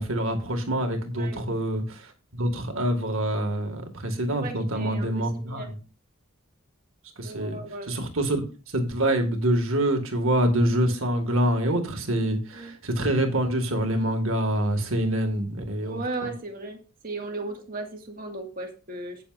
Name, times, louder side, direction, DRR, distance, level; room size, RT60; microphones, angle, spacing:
voice 1, 0.0-2.0 2.3-5.8 7.2-7.6 7.9-8.4 8.7-16.3, right 1 dB, 70° right, 2.0 m, -26 dB
voice 2, 4.3-5.7 7.2-7.9 12.5-12.8 15.8-19.2, right 2 dB, 40° right, 1.9 m, -36 dB
17.5 x 6.9 x 2.6 m
head